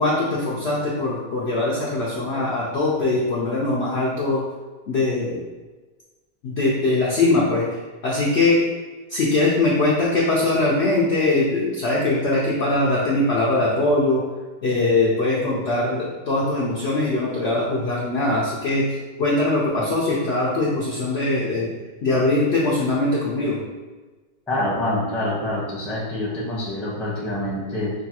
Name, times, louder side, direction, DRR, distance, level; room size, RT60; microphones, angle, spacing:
voice 1, 0.0-4.4 4.9-5.4 6.4-8.7 9.1-14.2 14.6-21.7 22.0-23.6, left 2 dB, 85° left, -5 dB, 0.5 m, -21 dB
voice 2, 24.5-27.9, left 1 dB, ahead, -6 dB, 0.3 m, -26 dB
5.0 x 2.2 x 2.8 m, 1.3 s
omnidirectional pair, 1.9 m